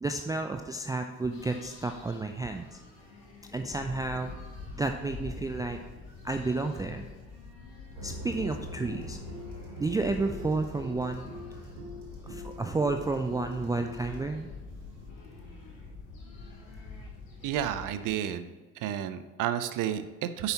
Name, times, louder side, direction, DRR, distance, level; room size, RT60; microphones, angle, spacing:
voice 1, 0.0-2.8 3.5-4.3 4.7-5.8 6.2-7.1 8.0-9.2 9.8-11.3 12.2-14.5, right 3 dB, 10° right, 5 dB, 0.4 m, -31 dB
sound 1, 1.3-18.1, left 3 dB, 75° left, 2.5 m, -46 dB
sound 2, 7.9-14.2, left 1 dB, 70° right, 1.5 m, -43 dB
voice 2, 17.4-18.5 18.8-20.5, right 10 dB, 50° right, 11 dB, 0.7 m, -31 dB
9.6 x 7.0 x 2.9 m, 1.3 s
figure-of-eight pair, 55°, 40 cm